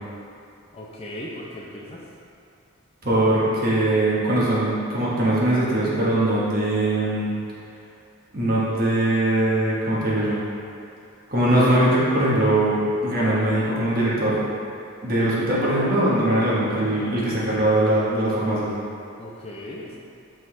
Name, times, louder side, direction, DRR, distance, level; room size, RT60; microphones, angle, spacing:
voice 1, 0.7-2.0 15.1-15.2 19.2-20.0, left 1 dB, 25° left, -4 dB, 0.5 m, -37 dB
voice 2, 3.0-7.3 8.3-10.4 11.3-14.5 15.0-18.7, right 1 dB, 45° right, -7 dB, 1.2 m, -21 dB
5.8 x 5.3 x 3.2 m, 2.5 s
head